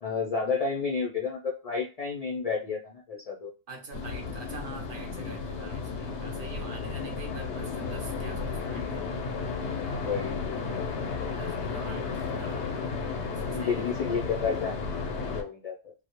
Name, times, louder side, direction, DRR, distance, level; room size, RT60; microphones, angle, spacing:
voice 1, 0.0-3.5 9.8-10.4 13.5-15.9, left 5 dB, 55° left, -1 dB, 0.4 m, -31 dB
voice 2, 3.7-9.3 11.4-12.9 13.2-14.2, right 3 dB, 60° right, 2 dB, 0.7 m, -46 dB
sound 1, 3.9-15.4, left 4 dB, 90° left, 0.9 m, -33 dB
2.2 x 2.0 x 2.8 m, 0.31 s
omnidirectional pair, 1.1 m